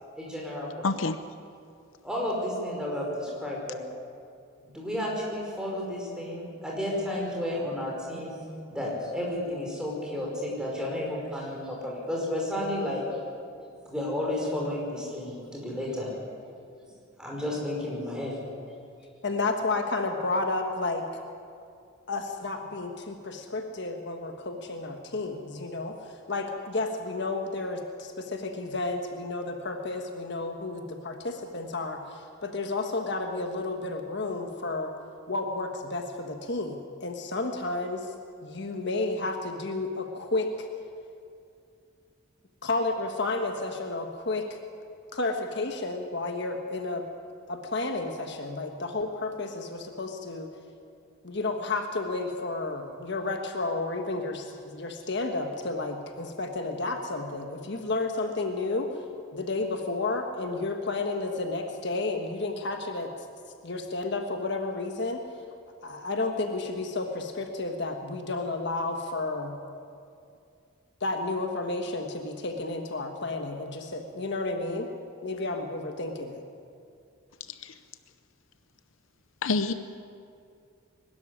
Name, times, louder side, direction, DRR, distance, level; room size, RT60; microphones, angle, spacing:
voice 1, 0.2-0.9 2.0-3.8 4.7-8.4 8.7-13.0 13.9-16.1 17.2-18.4, left 1 dB, 5° right, -3 dB, 5.2 m, -32 dB
voice 2, 0.8-1.2 77.5-77.8 79.4-79.7, left 3 dB, 70° left, 11 dB, 0.7 m, -27 dB
voice 3, 19.2-21.1 22.1-26.0 26.3-34.9 35.3-38.1 38.4-40.7 42.6-44.6 45.1-47.1 47.5-50.5 51.2-58.9 59.3-63.1 63.6-65.2 65.8-69.6 71.0-74.9 75.2-76.4, left 3 dB, 55° left, 4 dB, 1.4 m, -31 dB
22.0 x 13.0 x 9.9 m, 2.4 s
head